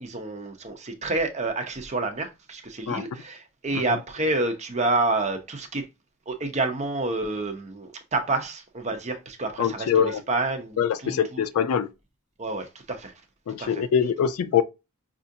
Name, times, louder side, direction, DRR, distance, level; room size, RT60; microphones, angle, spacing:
voice 1, 0.0-5.9 6.3-11.4 12.4-13.1 13.6-13.9, right 2 dB, 30° right, 0.7 m, -29 dB
voice 2, 9.6-10.2 10.8-11.9 13.5-14.6, left 8 dB, 85° left, 0.3 m, -23 dB
5.4 x 2.5 x 2.6 m
head